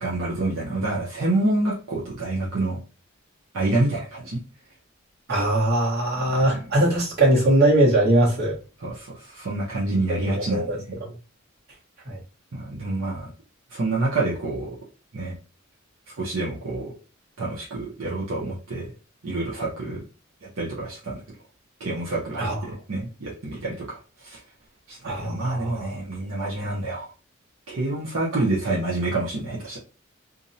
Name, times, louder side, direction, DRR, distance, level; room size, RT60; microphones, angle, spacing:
voice 1, 0.0-2.8 3.5-4.4 6.3-6.6 8.8-11.1 12.5-13.3 13.7-14.8 15.1-15.3 16.2-16.9 17.4-18.9 19.2-20.0 20.4-21.2 21.8-24.4 24.9-27.1 27.7-29.8, right 2 dB, 70° right, 0.6 m, -27 dB
voice 2, 5.3-8.6 10.1-10.8 12.0-12.2 22.4-22.6 25.0-25.9, right 1 dB, 45° right, 1.1 m, -21 dB
2.5 x 2.0 x 2.6 m
head